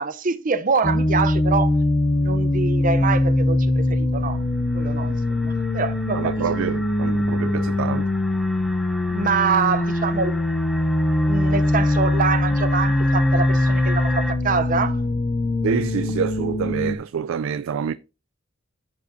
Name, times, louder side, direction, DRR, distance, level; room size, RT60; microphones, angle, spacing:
voice 1, 0.0-1.8 2.2-4.4 4.7-6.3 9.1-10.4 11.2-15.0, right 5 dB, 40° right, 0.6 m, -25 dB
sound 1, 0.8-17.0, left 1 dB, 25° left, 0.5 m, -22 dB
sound 2, 4.3-14.3, left 1 dB, ahead, 0.8 m, -37 dB
voice 2, 6.1-8.1 15.6-17.9, right 7 dB, 80° right, 0.3 m, -26 dB
13.5 x 5.1 x 2.6 m
head